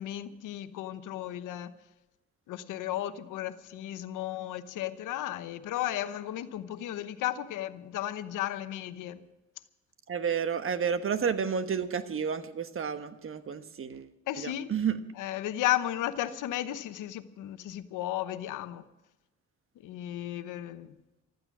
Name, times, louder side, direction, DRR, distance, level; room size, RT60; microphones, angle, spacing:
voice 1, 0.0-1.7 2.5-9.2 14.3-14.7 15.2-18.8 19.8-20.9, left 13 dB, 85° left, 1.0 m, -34 dB
voice 2, 10.1-14.1 14.4-14.9, right 7 dB, 45° right, 1.3 m, -31 dB
15.0 x 13.5 x 6.2 m
cardioid pair, 90°, 30 cm